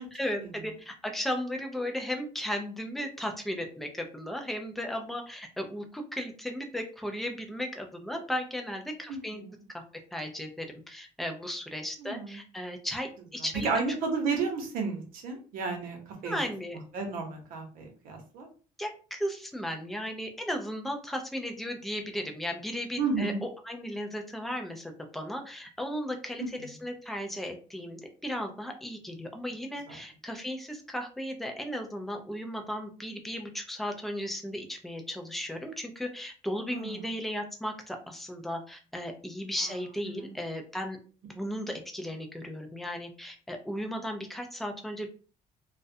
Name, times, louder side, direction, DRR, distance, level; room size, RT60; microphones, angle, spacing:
voice 1, 0.0-9.4 9.7-9.8 10.1-13.7 16.2-16.8 18.8-41.0 41.3-45.1, equal, ahead, 4 dB, 0.3 m, -35 dB
voice 2, 9.1-9.6 12.0-12.4 13.6-16.4 16.9-18.5 23.0-23.4 26.4-26.5 29.9-30.0 36.7-37.0 39.6-39.8 40.0-40.4, right 4 dB, 80° right, 3 dB, 0.8 m, -32 dB
2.3 x 2.1 x 2.6 m, 0.38 s
cardioid pair, 145°, 15 cm